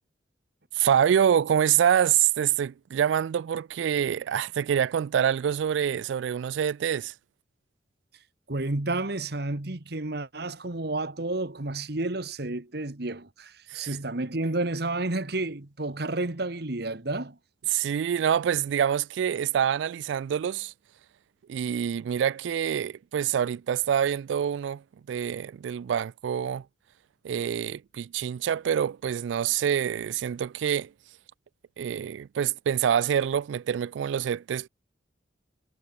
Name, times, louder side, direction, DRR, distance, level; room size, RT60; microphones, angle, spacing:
voice 1, 0.7-7.1 13.7-14.0 17.7-20.7 21.5-24.8 25.1-26.6 27.2-30.9 31.8-34.7, right 9 dB, 80° right, 0.3 m, -26 dB
voice 2, 8.5-17.4, right 2 dB, 60° right, 1.5 m, -31 dB
head